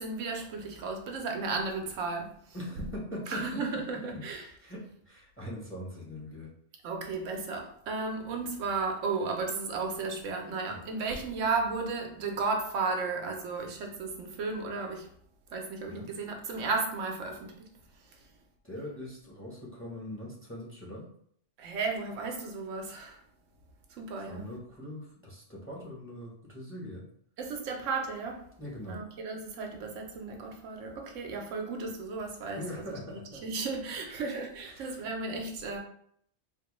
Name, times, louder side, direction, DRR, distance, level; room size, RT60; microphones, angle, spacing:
voice 1, 0.0-2.3 3.3-4.5 6.8-15.0 15.5-17.4 21.6-23.1 24.0-24.4 27.4-28.4 28.9-33.0 33.4-35.8, right 4 dB, 85° right, 2 dB, 1.0 m, -34 dB
voice 2, 2.5-3.5 4.1-4.2 4.6-6.5 10.7-10.9 15.8-16.1 18.2-18.3 18.6-21.0 24.2-27.0 28.6-29.0 32.6-33.4 34.6-35.0, left 1 dB, 15° left, -4 dB, 0.7 m, -42 dB
3.7 x 2.2 x 2.9 m, 0.65 s
omnidirectional pair, 1.2 m